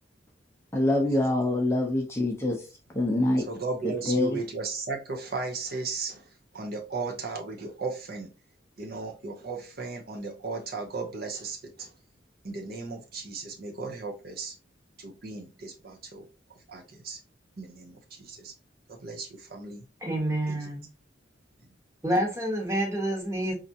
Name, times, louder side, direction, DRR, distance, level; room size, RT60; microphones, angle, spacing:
voice 1, 0.7-3.5 3.8-4.4, left 1 dB, 15° left, 0.5 m, -25 dB
voice 2, 3.5-8.3 8.8-11.9 12.4-14.5 15.0-16.3 16.7-17.2 17.6-18.5 18.9-19.8 20.5-20.7, right 4 dB, 50° right, 0.6 m, -36 dB
voice 3, 20.0-20.8 22.0-23.5, right 1 dB, 15° right, 1.1 m, -28 dB
4.3 x 2.4 x 2.6 m
head